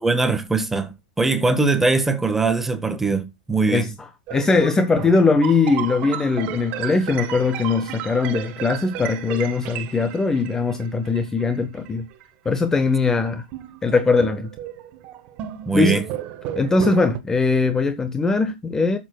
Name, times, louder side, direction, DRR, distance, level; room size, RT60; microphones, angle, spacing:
voice 1, 0.0-3.9 15.7-16.1, right 3 dB, 5° right, 1.4 m, -21 dB
voice 2, 4.3-12.1 12.4-13.4 13.8-14.5 15.7-16.0 16.6-19.0, left 4 dB, 10° left, 1.1 m, -20 dB
sound 1, 4.3-12.6 13.2-17.2, right 12 dB, 35° right, 1.2 m, -34 dB
14.5 x 7.0 x 2.3 m
figure-of-eight pair, 105°, 4 cm